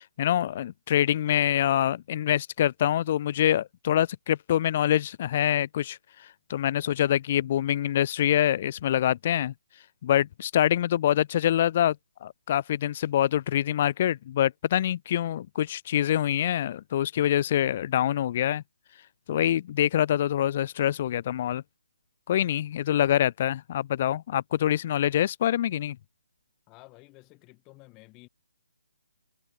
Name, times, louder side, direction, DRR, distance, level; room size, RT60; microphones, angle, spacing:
voice 1, 0.0-6.0 6.5-9.5 10.0-12.0 12.2-18.6 19.3-21.6 22.3-26.0, left 11 dB, 40° left, 0.9 m, -25 dB
voice 2, 26.7-28.3, left 25 dB, 20° left, 5.7 m, -52 dB
figure-of-eight pair, 150°, 0 cm